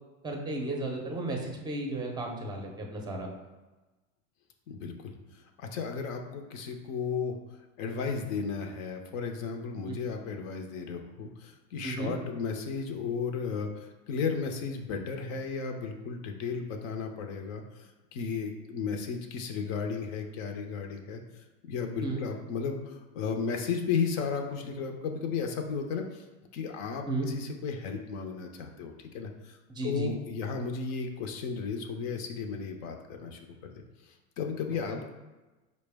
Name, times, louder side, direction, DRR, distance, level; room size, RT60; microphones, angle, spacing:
voice 1, 0.2-3.3 9.9-10.0 11.8-12.1 22.0-22.2 27.1-27.3 29.7-30.1 34.9-35.0, right 2 dB, 10° right, 1 dB, 0.5 m, -34 dB
voice 2, 4.7-5.1 5.6-7.4 7.8-21.2 21.7-26.2 26.5-29.6 29.8-33.8 34.4-35.1, left 5 dB, 65° left, 4 dB, 0.7 m, -34 dB
4.5 x 2.1 x 3.3 m, 1.1 s
supercardioid pair, 115°, 41 cm